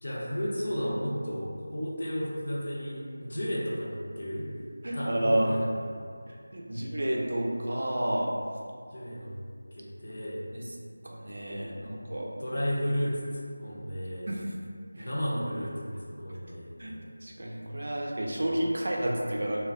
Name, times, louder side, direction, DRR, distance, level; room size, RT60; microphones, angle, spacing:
voice 1, 0.0-4.5 4.9-5.9 6.6-6.8 8.9-9.3 9.7-10.5 11.6-12.0 12.4-14.3 15.0-17.1, equal, 50° left, -6 dB, 0.6 m, -33 dB
voice 2, 4.8-5.5 6.3-8.3 10.1-10.2 10.5-10.6 11.0-12.3 14.3-14.5 15.0-15.1 16.3-16.4 16.8-16.9 17.2-19.6, right 1 dB, 55° right, -2 dB, 0.4 m, -30 dB
2.5 x 2.2 x 2.3 m, 2.1 s
figure-of-eight pair, 170°, 0 cm